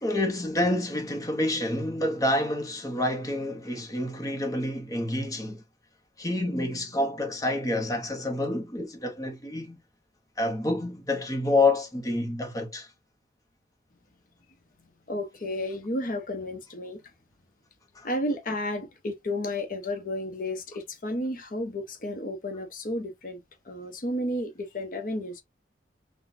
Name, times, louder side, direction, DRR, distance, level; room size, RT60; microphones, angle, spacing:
voice 1, 0.0-5.6 6.2-9.8 10.4-12.9 17.9-18.1, left 2 dB, 20° left, 0.9 m, -28 dB
voice 2, 15.1-17.0 18.0-25.4, left 1 dB, 45° left, 0.9 m, -32 dB
4.0 x 2.3 x 2.6 m
head